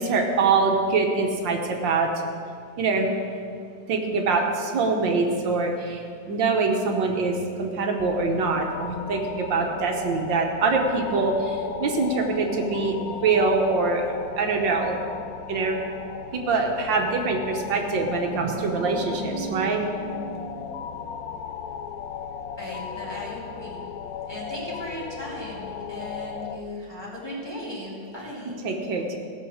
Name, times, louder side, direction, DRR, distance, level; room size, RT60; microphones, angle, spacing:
voice 1, 0.0-2.1 2.8-3.1 3.9-15.0 15.5-15.8 16.3-20.7 28.6-29.2, right 4 dB, 80° right, 2 dB, 1.8 m, -24 dB
sound 1, 8.0-26.6, left 7 dB, 70° left, 0.9 m, -37 dB
voice 2, 22.6-23.8 24.3-28.5, left 1 dB, 15° left, -6 dB, 2.9 m, -37 dB
17.0 x 6.9 x 6.4 m, 2.3 s
omnidirectional pair, 2.0 m